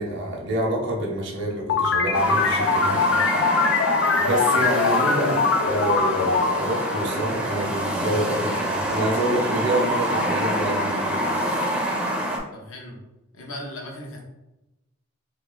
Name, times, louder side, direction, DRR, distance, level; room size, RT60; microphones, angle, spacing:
voice 1, 0.0-3.0 4.2-11.1, right 1 dB, 55° right, -1 dB, 0.7 m, -27 dB
sound 1, 1.7-7.9, left 4 dB, 65° left, 0.4 m, -22 dB
sound 2, 2.1-12.4, equal, 5° right, 0.5 m, -26 dB
voice 2, 12.5-13.0 13.3-14.2, left 1 dB, 85° left, -1 dB, 1.0 m, -37 dB
2.8 x 2.8 x 3.7 m, 0.97 s
head